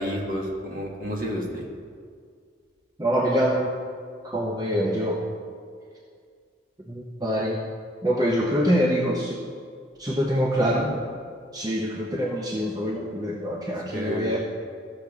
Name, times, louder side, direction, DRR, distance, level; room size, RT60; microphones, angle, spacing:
voice 1, 0.0-1.6 10.6-10.9 13.9-14.3, equal, 45° right, -1 dB, 1.5 m, -30 dB
voice 2, 3.0-3.7 4.2-5.2 6.9-7.6 8.0-9.4 10.0-10.9 11.5-14.4, equal, 20° right, -2 dB, 0.7 m, -25 dB
14.5 x 6.7 x 3.5 m, 2.1 s
head